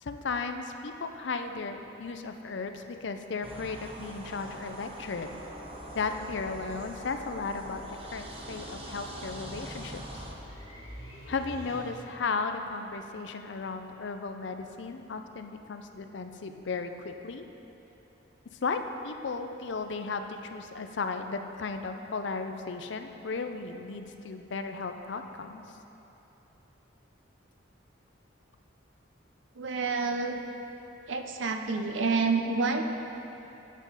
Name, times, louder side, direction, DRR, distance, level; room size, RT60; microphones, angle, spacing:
voice 1, 0.0-5.4 5.9-7.8 8.1-10.0 11.3-17.4 18.6-25.6, left 4 dB, 65° left, 7 dB, 0.5 m, -35 dB
sound 1, 3.4-10.3, right 1 dB, 30° right, 0.8 m, -43 dB
sound 2, 7.6-12.3, equal, 85° left, 2.2 m, -49 dB
voice 2, 29.6-30.4 31.1-32.8, right 4 dB, 70° right, 5 dB, 0.6 m, -28 dB
8.9 x 8.3 x 4.0 m, 3.0 s
head